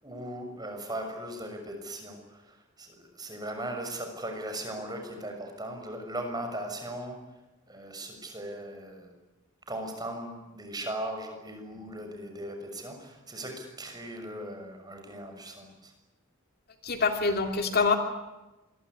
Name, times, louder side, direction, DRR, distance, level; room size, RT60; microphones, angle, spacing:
voice 1, 0.0-7.2 7.7-9.1 9.7-15.9, right 1 dB, 20° right, 5 dB, 6.4 m, -38 dB
voice 2, 16.8-18.0, left 4 dB, 45° left, 5 dB, 2.4 m, -25 dB
26.5 x 22.0 x 9.9 m, 1.0 s
head